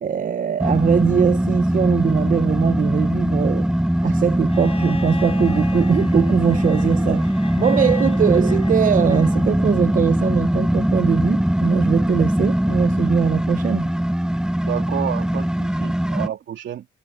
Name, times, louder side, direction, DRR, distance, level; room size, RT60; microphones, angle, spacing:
voice 1, 0.0-3.7 4.0-13.9, right 8 dB, 40° right, 0.6 m, -21 dB
sound 1, 0.6-16.3, right 1 dB, 5° right, 0.8 m, -21 dB
Bowed string instrument, 4.5-9.5 11.0-11.1, left 4 dB, 30° left, 4.0 m, -38 dB
voice 2, 14.6-16.9, right 10 dB, 70° right, 2.8 m, -30 dB
cardioid pair, 90°, 20 cm